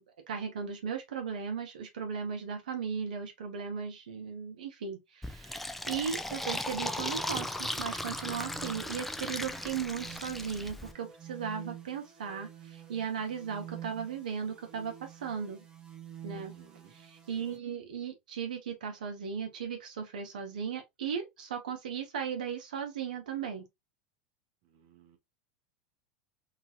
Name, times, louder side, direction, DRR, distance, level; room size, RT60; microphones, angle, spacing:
voice 1, 0.3-15.6 16.2-16.5 16.9-23.6, right 7 dB, 85° right, 0.9 m, -37 dB
Fill (with liquid), 5.2-10.9, left 1 dB, 5° left, 0.4 m, -37 dB
sound 1, 7.6-17.6, right 10 dB, 20° right, 0.8 m, -49 dB
voice 2, 16.3-17.0 17.4-17.6 24.6-25.2, right 8 dB, 55° right, 0.8 m, -58 dB
2.9 x 2.4 x 2.8 m
hypercardioid pair, 110°, 4 cm